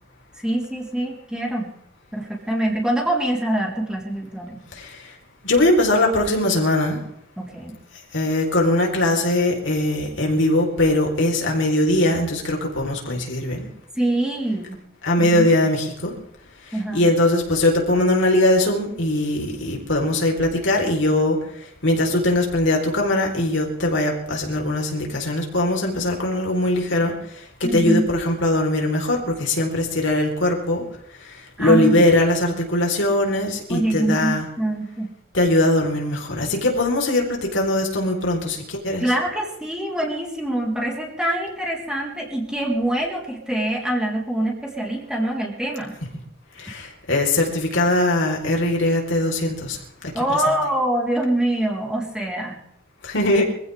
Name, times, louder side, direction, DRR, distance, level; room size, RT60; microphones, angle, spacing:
voice 1, 0.4-1.7 2.1-4.6 7.4-7.7 14.0-14.8 15.2-15.5 16.7-17.1 27.6-28.1 31.6-32.1 33.7-35.1 39.0-45.9 50.1-52.6, right 1 dB, 5° right, -3 dB, 4.0 m, -24 dB
voice 2, 5.4-7.0 8.1-13.7 15.0-16.1 16.9-21.4 21.8-27.1 27.7-30.8 31.6-34.5 35.3-39.0 46.6-49.8 50.3-50.4 53.0-53.4, left 1 dB, 65° left, 1 dB, 4.1 m, -20 dB
25.0 x 16.0 x 3.5 m, 0.76 s
head